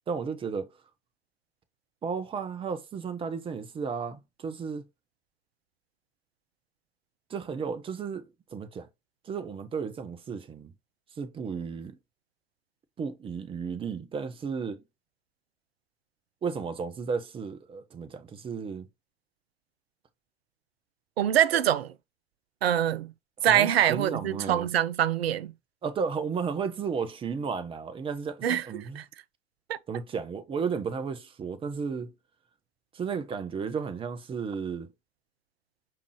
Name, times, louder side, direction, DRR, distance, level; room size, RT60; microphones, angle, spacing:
voice 1, 0.1-0.7 2.0-4.8 7.3-8.9 9.2-10.7 11.2-12.0 13.0-14.8 16.4-18.9 23.4-24.7 25.8-29.0 29.9-32.1 32.9-34.9, right 6 dB, 15° right, 0.6 m, -33 dB
voice 2, 21.2-21.9 22.6-23.1 23.4-25.5 28.4-28.7 28.9-29.0 29.7-29.8, right 11 dB, 70° right, 0.5 m, -24 dB
5.2 x 2.8 x 3.0 m
figure-of-eight pair, 80°, 32 cm